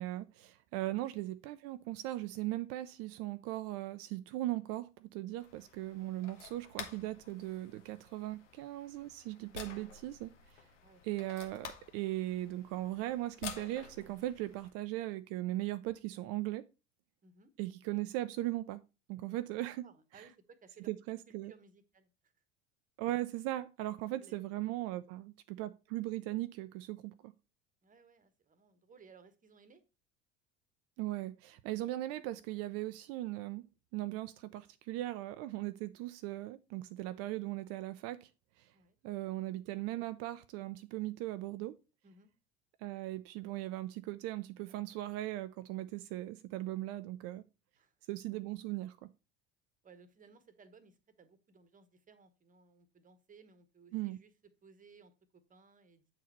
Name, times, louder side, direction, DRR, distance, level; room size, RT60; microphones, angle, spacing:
voice 1, 0.0-10.6 11.0-16.6 17.6-18.8 19.1-19.8 20.1-20.3 20.9-21.5 23.0-27.3 31.0-33.6 33.9-38.3 38.6-38.7 39.0-41.8 42.8-47.4 48.1-49.1 53.9-54.2, right 16 dB, 45° right, 0.4 m, -38 dB
sound 1, 5.4-14.7, left 6 dB, 80° left, 1.1 m, -51 dB
voice 2, 19.6-20.9 21.3-22.3 24.1-24.4 27.8-29.8 38.7-39.0 42.0-42.3 47.7-47.9 49.8-54.3 54.6-55.1 55.5-56.1, right 5 dB, 20° right, 1.0 m, -61 dB
8.2 x 4.0 x 4.2 m
figure-of-eight pair, 70°, 36 cm